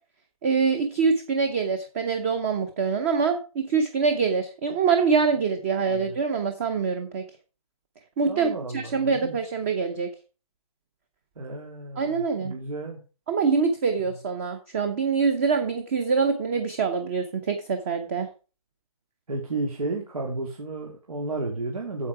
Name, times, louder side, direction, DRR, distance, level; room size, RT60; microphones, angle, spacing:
voice 1, 0.4-7.2 8.2-10.1 12.0-12.5 13.3-18.3, right 5 dB, 20° right, 8 dB, 0.8 m, -25 dB
voice 2, 5.9-6.2 8.2-9.4 11.4-13.0 14.0-14.2 19.3-22.1, right 2 dB, 80° right, 0 dB, 2.7 m, -33 dB
8.5 x 7.8 x 4.7 m, 0.34 s
hypercardioid pair, 165°, 18 cm